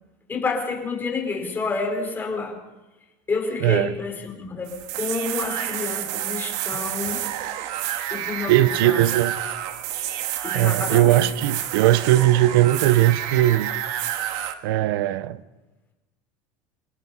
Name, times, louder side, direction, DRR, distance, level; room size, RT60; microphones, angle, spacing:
voice 1, 0.3-2.6 3.3-7.3 8.1-9.0 10.4-11.2, left 4 dB, 15° left, 4.8 m, -29 dB
voice 2, 3.6-3.9 8.5-9.4 10.5-13.7 14.6-15.4, right 14 dB, 90° right, 0.9 m, -19 dB
sound 1, 4.7-14.5, right 12 dB, 65° right, 1.8 m, -29 dB
28.0 x 17.5 x 5.6 m
cardioid pair, 150°, 12 cm